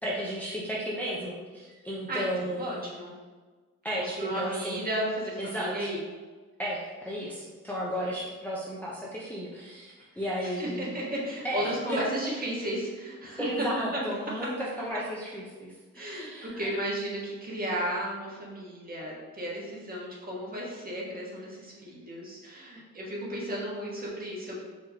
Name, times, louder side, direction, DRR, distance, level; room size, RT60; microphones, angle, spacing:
voice 1, 0.0-2.8 3.8-4.8 5.4-5.9 6.6-10.9 11.4-12.0 13.4-16.8, equal, 5° left, -6 dB, 0.7 m, -34 dB
voice 2, 2.1-3.1 4.0-6.0 10.4-13.7 13.9-14.0 14.4-14.5 15.9-24.6, right 1 dB, 30° right, -4 dB, 1.3 m, -34 dB
4.8 x 2.9 x 2.8 m, 1.4 s
cardioid pair, 90°, 30 cm